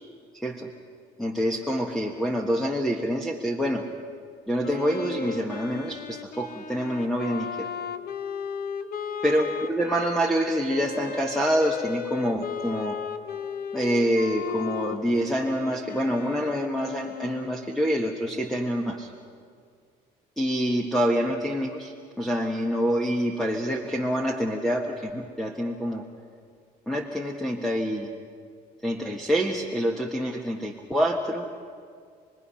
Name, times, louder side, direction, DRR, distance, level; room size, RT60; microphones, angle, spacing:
voice 1, 0.3-0.7 1.2-3.8 4.5-7.7 9.2-13.0 13.7-19.1 20.4-21.9 22.2-26.0 26.9-28.1 28.8-31.5, equal, ahead, 2 dB, 1.5 m, -26 dB
Wind instrument woodwind instrument, 4.6-18.0, left 7 dB, 65° left, 1.3 m, -35 dB
28.5 x 20.5 x 5.7 m, 2.1 s
cardioid pair, 110°, 17 cm